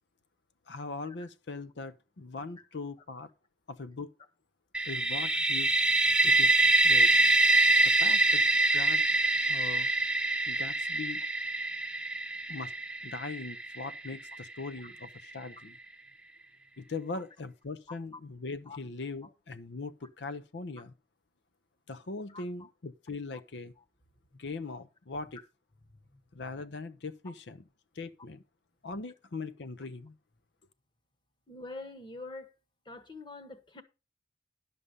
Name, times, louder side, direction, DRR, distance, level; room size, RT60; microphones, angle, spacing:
voice 1, 0.7-3.3 3.7-4.1 4.8-5.7 6.2-6.6 6.8-7.1 7.8-8.4 8.7-9.0 9.5-9.9 10.5-11.2 12.5-12.7 13.0-15.8 16.8-20.9 21.9-23.7 24.4-25.4 26.3-27.6 27.9-28.4 28.8-30.1, left 3 dB, 80° left, 0.7 m, -40 dB
sound 1, 4.7-14.4, right 2 dB, 5° right, 0.8 m, -25 dB
voice 2, 22.3-22.7 23.3-23.4 26.1-26.2 31.5-32.5 32.9-33.8, left 3 dB, 25° left, 1.2 m, -45 dB
11.0 x 6.9 x 5.2 m
head